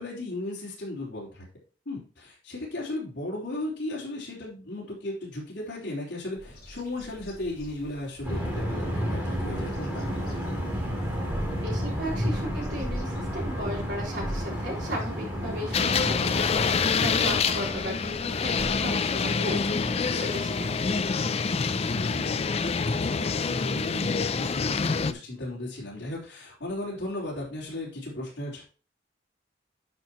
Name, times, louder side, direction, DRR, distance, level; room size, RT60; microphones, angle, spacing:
voice 1, 0.0-1.4 1.9-10.0 16.9-17.4 21.9-28.6, left 1 dB, 75° left, -6 dB, 3.6 m, -36 dB
Bird vocalization bird call bird song, 6.4-19.6, equal, 55° left, 4.2 m, -43 dB
sound 1, 8.2-18.5, equal, 10° right, 2.7 m, -32 dB
voice 2, 11.6-21.1, equal, 65° right, -4 dB, 4.1 m, -36 dB
sound 2, 15.7-25.1, left 5 dB, 35° left, 0.4 m, -26 dB
10.0 x 6.2 x 3.0 m, 0.38 s
head